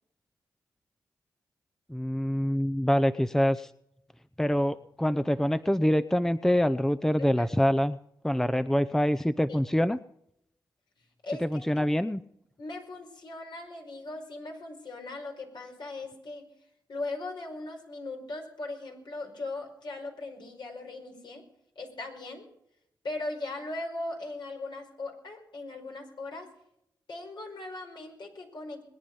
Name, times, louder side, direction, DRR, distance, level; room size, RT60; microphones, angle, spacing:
voice 1, 1.9-3.7 4.4-8.0 8.2-10.0 11.4-12.2, equal, 5° left, 12 dB, 0.7 m, -25 dB
voice 2, 11.2-11.9 12.6-16.5 16.9-21.4 21.7-22.5 23.0-26.5 27.1-28.8, left 2 dB, 70° left, 2 dB, 4.9 m, -39 dB
21.5 x 9.9 x 5.3 m, 0.76 s
cardioid pair, 50°, 8 cm